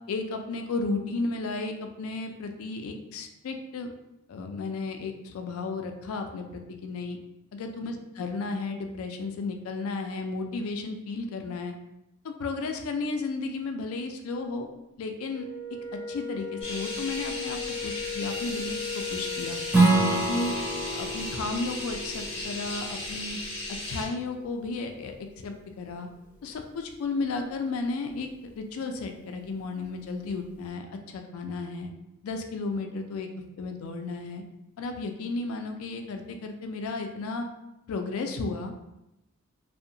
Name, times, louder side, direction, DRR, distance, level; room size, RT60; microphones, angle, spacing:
voice 1, 0.1-3.9 4.3-7.2 7.5-11.7 12.2-14.7 15.0-15.5 16.1-19.6 20.3-20.6 20.9-23.4 23.9-25.2 25.4-26.1 26.4-28.3 28.6-31.9 32.2-33.3 33.6-34.4 34.8-37.5 37.9-38.7, left 3 dB, 75° left, 5 dB, 0.3 m, -33 dB
Wind instrument woodwind instrument, 15.2-20.9, left 6 dB, 70° right, 0.9 m, -37 dB
sound 1, 16.6-24.1, left 1 dB, 30° left, 0.7 m, -36 dB
Strum, 19.7-24.9, right 2 dB, 10° right, 0.4 m, -28 dB
2.7 x 2.1 x 2.6 m, 0.91 s
head